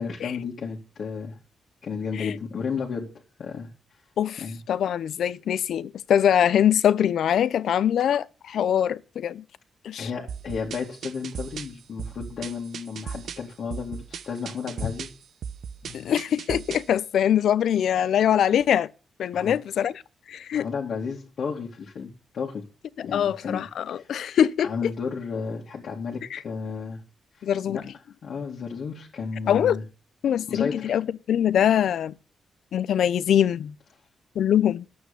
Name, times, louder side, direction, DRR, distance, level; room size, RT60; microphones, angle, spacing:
voice 1, 0.0-1.4 1.8-3.7 4.4-4.6 10.0-15.1 19.3-19.6 20.5-22.6 23.1-24.1 24.6-27.0 27.3-27.9 28.2-29.8 30.5-31.0, left 5 dB, 55° left, 2.3 m, -33 dB
voice 2, 4.2-9.4 9.8-10.1 15.9-18.9 19.2-19.9 20.3-20.7 23.0-24.9 26.3-26.4 27.4-27.8 29.5-29.8 30.2-32.1 32.7-33.7 34.3-34.9, left 9 dB, 70° left, 0.6 m, -23 dB
sound 1, 10.3-17.0, right 7 dB, 65° right, 0.9 m, -38 dB
11.0 x 8.7 x 6.7 m
wide cardioid pair, 150°, 0 cm